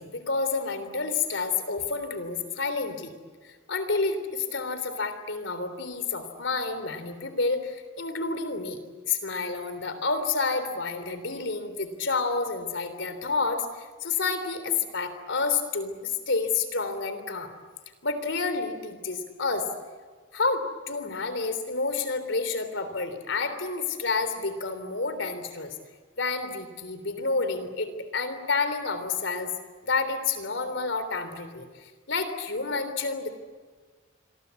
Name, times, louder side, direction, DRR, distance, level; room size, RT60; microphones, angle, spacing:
voice 1, 0.0-3.1 3.4-8.8 9.0-17.5 18.0-19.7 20.3-25.7 26.2-29.5 29.8-33.3, left 4 dB, 80° left, 10 dB, 3.4 m, -29 dB
26.5 x 23.5 x 8.4 m, 1.5 s
head